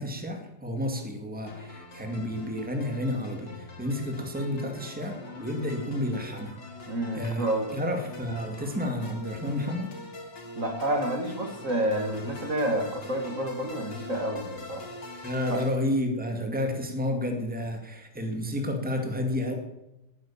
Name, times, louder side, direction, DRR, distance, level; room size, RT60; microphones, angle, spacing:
voice 1, 0.0-6.6 6.8-7.5 7.7-9.9 15.2-19.5, left 1 dB, 5° right, 4 dB, 2.2 m, -31 dB
sound 1, 1.5-15.7, left 2 dB, 70° left, 3.5 m, -43 dB
voice 2, 6.9-7.8 10.6-14.8 15.5-15.6, right 1 dB, 45° right, 4 dB, 2.4 m, -29 dB
18.5 x 10.0 x 7.3 m, 0.93 s
omnidirectional pair, 1.9 m